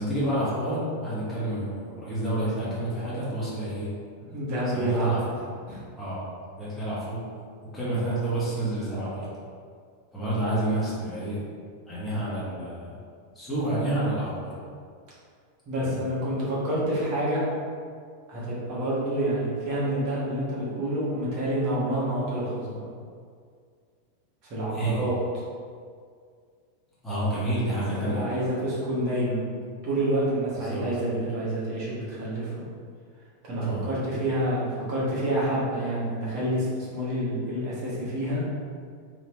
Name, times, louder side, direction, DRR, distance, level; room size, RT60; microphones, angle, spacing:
voice 1, 0.0-3.9 4.7-5.4 6.0-6.3 6.6-7.2 7.6-9.3 10.1-11.4 11.9-12.9 13.3-14.6 15.8-15.9 24.7-25.0 27.0-28.4 30.5-30.9 33.6-33.9, right 1 dB, 10° left, -9 dB, 1.4 m, -29 dB
voice 2, 4.3-5.1 5.7-5.8 15.7-17.4 18.3-22.8 24.5-25.2 28.0-29.4 29.8-32.6 33.4-38.4, right 1 dB, 40° right, -8 dB, 1.3 m, -28 dB
3.3 x 2.8 x 3.0 m, 2.1 s
figure-of-eight pair, 90°, 0 cm